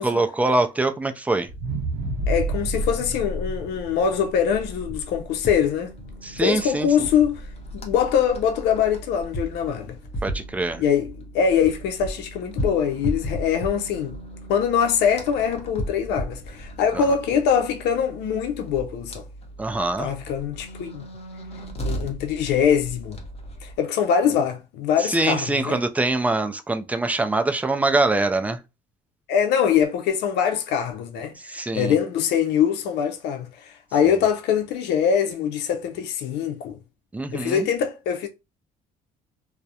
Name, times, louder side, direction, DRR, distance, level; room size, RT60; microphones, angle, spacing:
voice 1, 0.0-1.5 6.2-7.1 10.2-10.8 16.9-17.0 19.6-20.1 25.0-28.6 31.5-31.9 37.1-37.7, right 2 dB, 10° right, 0.3 m, -24 dB
sound 1, 1.5-5.7 6.2-6.3, right 1 dB, 85° right, 0.6 m, -29 dB
voice 2, 2.3-5.9 6.4-10.0 10.8-14.2 14.5-19.2 20.0-21.0 21.8-23.2 23.6-25.8 29.3-36.8 37.3-38.3, left 8 dB, 80° left, 0.5 m, -23 dB
sound 2, 4.5-23.8, equal, 40° left, 0.8 m, -36 dB
2.3 x 2.0 x 2.7 m
cardioid pair, 110°, 17 cm